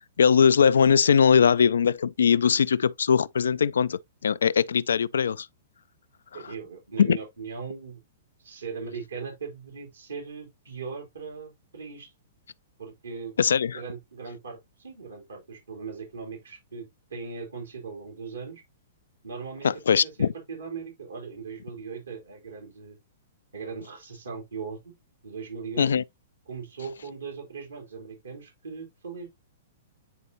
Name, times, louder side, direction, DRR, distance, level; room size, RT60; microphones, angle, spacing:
voice 1, 0.2-5.5 7.0-7.2 13.4-13.8 19.6-20.3 25.8-26.0, left 7 dB, 75° left, 0.3 m, -21 dB
voice 2, 6.3-8.0 8.4-12.1 12.8-13.3 13.7-18.6 19.2-23.0 23.5-24.9 25.2-25.9 26.5-29.3, right 5 dB, 80° right, 3.4 m, -39 dB
9.4 x 4.3 x 2.7 m
hypercardioid pair, 115°, 0 cm